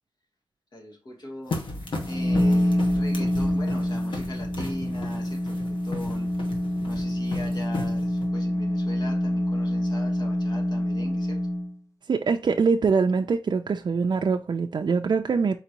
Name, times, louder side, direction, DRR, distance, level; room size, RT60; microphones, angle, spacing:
voice 1, 0.7-1.6 2.1-6.3 6.9-11.5, left 1 dB, 60° left, 1.5 m, -41 dB
sound 1, 1.5-8.3, left 2 dB, 85° left, 1.2 m, -36 dB
sound 2, 1.9-11.8, left 1 dB, 40° left, 0.9 m, -26 dB
voice 2, 12.1-15.5, right 5 dB, 65° right, 0.4 m, -23 dB
4.4 x 3.9 x 2.9 m
wide cardioid pair, 80°, 8 cm